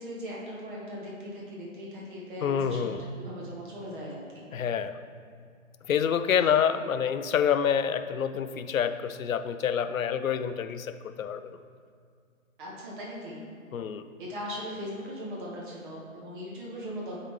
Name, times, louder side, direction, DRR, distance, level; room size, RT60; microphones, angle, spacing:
voice 1, 0.0-4.5 12.6-13.4 14.2-17.2, equal, 35° right, -4 dB, 1.6 m, -39 dB
voice 2, 2.4-3.0 4.5-5.0 5.9-11.4 13.7-14.0, left 8 dB, 75° left, 11 dB, 0.5 m, -27 dB
9.9 x 4.0 x 3.2 m, 2.2 s
figure-of-eight pair, 130°, 41 cm